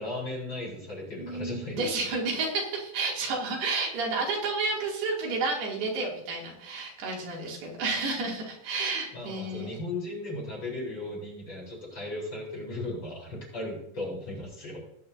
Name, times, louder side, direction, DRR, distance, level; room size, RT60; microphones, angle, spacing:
voice 1, 0.0-1.8 9.1-14.9, left 2 dB, 30° left, -4 dB, 4.4 m, -36 dB
voice 2, 1.2-9.8, right 3 dB, 90° right, -2 dB, 4.7 m, -31 dB
18.5 x 9.8 x 2.7 m, 0.74 s
omnidirectional pair, 4.4 m